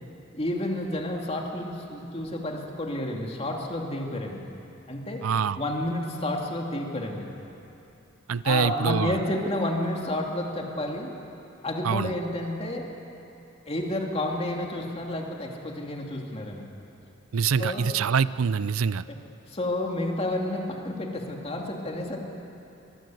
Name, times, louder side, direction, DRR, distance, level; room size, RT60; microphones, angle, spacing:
voice 1, 0.3-4.4 4.9-5.2 5.6-7.3 8.4-11.1 11.6-12.8 13.7-16.7 17.6-17.9 19.1-19.2 19.5-22.2, left 1 dB, 30° left, 0 dB, 2.7 m, -30 dB
voice 2, 5.2-5.6 8.3-9.2 11.8-12.1 17.3-19.0, right 6 dB, 90° right, 17 dB, 0.5 m, -25 dB
24.0 x 20.0 x 7.7 m, 2.9 s
head